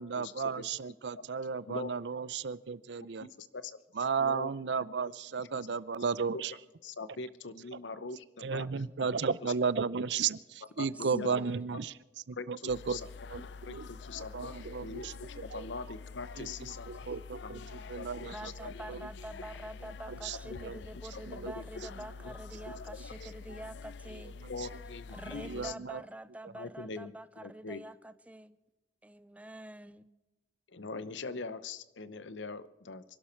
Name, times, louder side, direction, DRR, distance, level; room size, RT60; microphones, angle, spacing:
voice 1, 0.0-3.3 3.9-6.5 8.4-11.9 12.3-13.0 13.3-13.9 14.2-15.7 16.4-19.0 19.8-20.8 21.2-21.6 22.0-22.1 22.7-22.8 23.2-23.6 24.1-24.7 25.5-26.0, right 5 dB, 70° right, 18 dB, 0.6 m, -35 dB
voice 2, 3.4-3.8 4.2-4.5 6.3-6.4 6.8-8.7 9.4-9.5 10.8-11.3 12.3-13.1 13.4-14.5 14.8-17.1 17.4-18.7 20.5-20.6 21.1-21.6 22.2-22.4 22.7-22.8 23.0-23.1 24.5-25.7 26.5-27.8 30.7-33.0, left 4 dB, 85° left, 15 dB, 0.8 m, -42 dB
voice 3, 10.8-11.6 18.3-24.3 25.1-28.6 29.0-30.1, right 1 dB, 10° right, 15 dB, 0.5 m, -46 dB
sound 1, 12.7-25.7, left 4 dB, 70° left, 0.4 m, -46 dB
26.0 x 12.0 x 4.5 m, 1.1 s
head